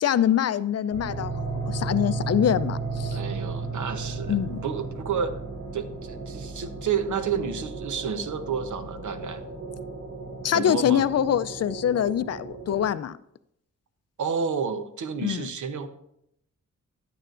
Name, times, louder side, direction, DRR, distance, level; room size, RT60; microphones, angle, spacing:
voice 1, 0.0-1.3 1.7-3.2 4.3-4.6 10.4-13.2 15.2-15.5, left 9 dB, 55° left, 0.5 m, -24 dB
sound 1, 0.9-12.9, right 3 dB, 50° right, 2.5 m, -34 dB
voice 2, 3.1-4.4 4.6-5.4 5.7-9.4 10.5-11.0 14.2-15.9, right 6 dB, 75° right, 0.9 m, -30 dB
10.5 x 8.9 x 2.5 m
cardioid pair, 70°, 31 cm